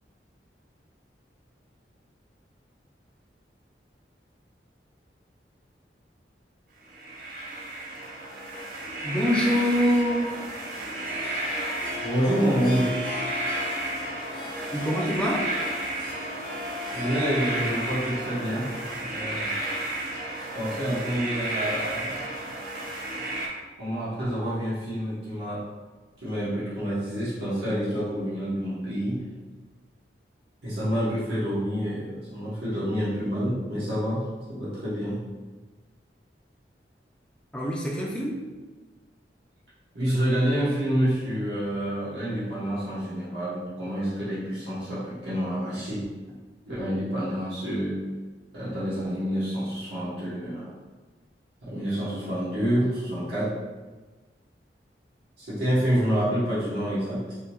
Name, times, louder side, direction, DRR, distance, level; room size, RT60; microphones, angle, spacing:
sound 1, 6.9-23.5, right 2 dB, 50° right, 0.5 m, -33 dB
voice 1, 9.0-10.4 14.7-15.5 37.5-38.4, equal, 5° left, -3 dB, 0.4 m, -25 dB
Harp, 9.9-20.0, left 3 dB, 55° left, 0.8 m, -38 dB
voice 2, 12.0-12.9 14.4-14.6 16.9-19.5 20.4-22.3 23.8-25.7 26.2-29.2 30.6-35.2 39.9-46.0 46.6-48.0 48.5-50.7 51.6-53.5 55.4-57.3, equal, 80° right, -11 dB, 1.0 m, -28 dB
3.5 x 2.2 x 2.8 m, 1.3 s
head